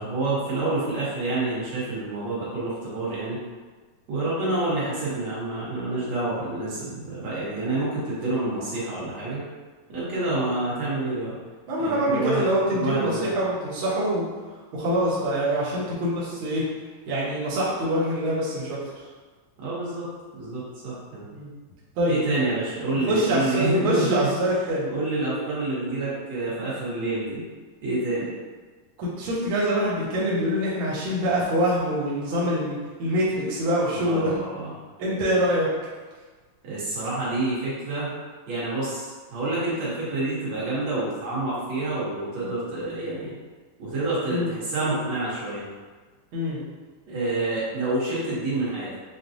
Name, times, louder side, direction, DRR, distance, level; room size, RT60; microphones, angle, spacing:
voice 1, 0.0-3.4 4.1-9.4 9.9-11.4 11.8-13.4 19.6-20.1 20.4-21.3 22.1-24.3 24.9-27.4 27.8-28.3 33.9-34.7 36.6-38.1 38.5-43.3 43.8-45.7 47.1-48.9, right 2 dB, 60° right, -8 dB, 2.0 m, -28 dB
voice 2, 11.7-14.3 14.7-16.6 17.1-18.8 21.3-21.5 22.0-22.2 23.1-24.9 29.0-34.3 35.0-35.7 44.3-44.5 46.3-46.6, equal, 85° right, -8 dB, 1.1 m, -25 dB
6.3 x 2.2 x 2.6 m, 1.4 s
omnidirectional pair, 3.9 m